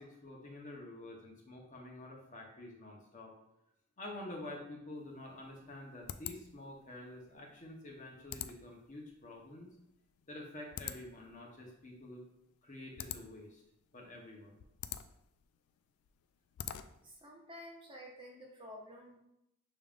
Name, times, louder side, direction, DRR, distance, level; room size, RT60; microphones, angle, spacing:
voice 1, 0.0-3.3 4.0-9.7 10.3-12.2 12.6-13.6 13.9-14.6, left 1 dB, 35° left, -1 dB, 0.8 m, -48 dB
sound 1, 5.0-17.2, left 11 dB, 85° left, 0.3 m, -48 dB
voice 2, 17.0-19.2, equal, 25° right, -2 dB, 0.9 m, -51 dB
6.3 x 3.5 x 2.4 m, 0.82 s
head